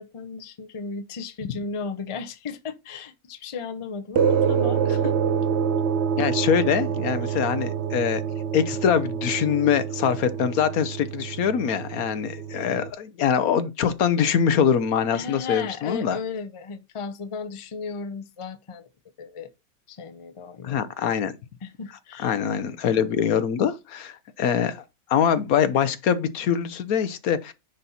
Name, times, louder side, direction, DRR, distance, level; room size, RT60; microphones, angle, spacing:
voice 1, 0.0-5.2 7.2-7.4 15.1-18.9 19.2-19.5 19.9-20.9 21.6-22.3, left 5 dB, 30° left, 0.6 m, -35 dB
sound 1, 4.1-12.9, right 7 dB, 60° right, 0.8 m, -26 dB
voice 2, 6.2-8.2 8.5-16.2 20.6-21.3 22.2-24.8 25.1-27.5, left 8 dB, 70° left, 1.2 m, -23 dB
10.0 x 4.3 x 4.1 m
omnidirectional pair, 1.6 m